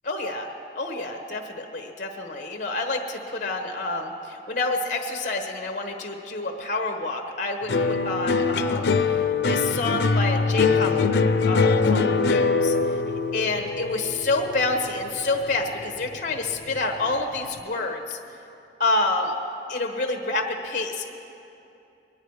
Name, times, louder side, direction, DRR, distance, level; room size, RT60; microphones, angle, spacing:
voice 1, 0.0-0.5 0.7-9.2 9.4-12.7 13.3-18.2 18.8-19.3 19.7-21.1, left 2 dB, 45° left, 3 dB, 1.1 m, -28 dB
sound 1, 7.7-16.1 16.5-17.1, left 4 dB, 75° left, 0.5 m, -23 dB
22.0 x 10.0 x 4.8 m, 2.8 s
head